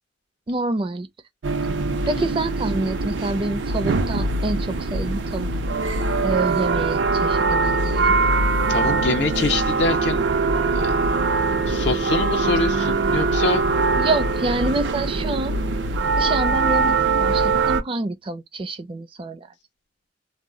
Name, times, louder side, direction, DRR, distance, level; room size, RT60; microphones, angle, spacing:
voice 1, 0.5-1.1 2.1-5.5 6.2-8.1 14.0-15.6 16.2-19.5, right 2 dB, 30° right, 0.4 m, -27 dB
sound 1, 1.4-17.8, right 3 dB, 85° right, 0.5 m, -22 dB
voice 2, 8.7-10.3 10.7-11.0 11.7-13.6, left 3 dB, 70° left, 0.5 m, -25 dB
2.2 x 2.0 x 3.6 m
head